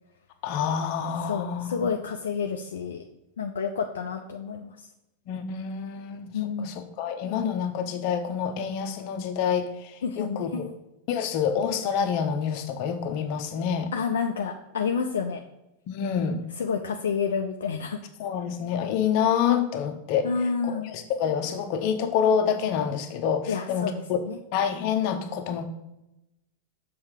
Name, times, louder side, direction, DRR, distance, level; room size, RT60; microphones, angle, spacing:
voice 1, 0.4-1.9 5.3-6.3 6.6-10.6 11.1-13.9 15.9-16.4 18.2-20.3 20.6-24.2 24.5-25.7, left 7 dB, 45° left, 6 dB, 0.9 m, -27 dB
voice 2, 1.2-3.0 3.4-4.7 6.3-6.8 10.0-10.7 13.9-15.4 16.6-18.0 20.2-20.9 23.5-24.4, left 6 dB, 65° left, 3 dB, 0.6 m, -29 dB
7.2 x 4.7 x 5.0 m, 0.92 s
figure-of-eight pair, 90°, 0 cm